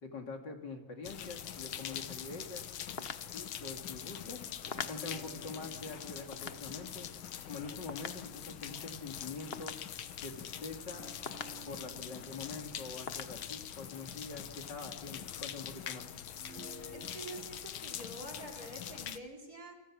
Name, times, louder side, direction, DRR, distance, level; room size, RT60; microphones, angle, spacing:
voice 1, 0.0-2.6 3.3-4.4 4.9-7.1 7.5-9.8 10.2-11.1 11.7-16.0, left 3 dB, 60° left, 3 dB, 3.2 m, -45 dB
sound 1, 1.0-19.2, left 10 dB, 80° left, 1.8 m, -44 dB
sound 2, 3.0-10.9 11.3-12.5 12.7-12.8 13.1-14.1, left 5 dB, 40° left, 0.9 m, -47 dB
sound 3, 4.7-9.2 10.9-15.0 16.4-17.1, right 1 dB, 80° right, 4.6 m, -56 dB
voice 2, 16.9-19.7, right 1 dB, 45° right, 0 dB, 4.5 m, -47 dB
28.5 x 25.5 x 6.2 m, 1.1 s
omnidirectional pair, 2.2 m